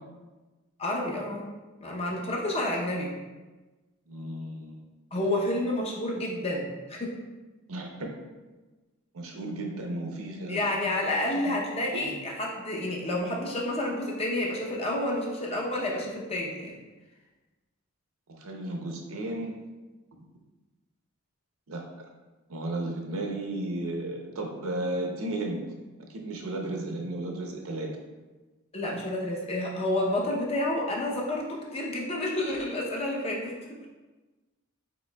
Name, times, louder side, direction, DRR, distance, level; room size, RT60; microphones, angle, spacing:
voice 1, 0.8-1.5 1.8-3.1 5.1-7.2 10.5-16.7 28.7-33.5, left 1 dB, 30° left, -2 dB, 0.6 m, -29 dB
voice 2, 4.1-4.8 7.7-8.1 9.1-11.6 11.9-12.1 18.4-19.6 21.7-21.8 22.5-25.6 26.1-27.9, right 2 dB, 80° right, 1 dB, 0.7 m, -34 dB
5.0 x 4.1 x 2.2 m, 1.2 s
head